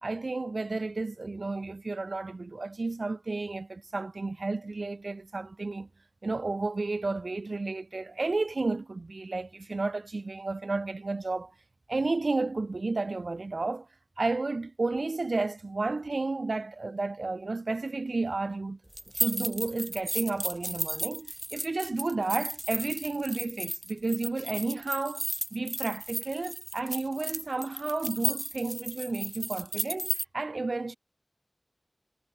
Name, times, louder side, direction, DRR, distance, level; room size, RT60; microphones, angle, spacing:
voice 1, 0.0-5.9 6.2-11.5 11.9-13.9 14.2-18.8 19.1-31.0, right 3 dB, 65° right, 4.3 m, -32 dB
sound 1, 18.9-30.2, right 1 dB, 20° right, 1.8 m, -34 dB
wide cardioid pair, 40°, 0 cm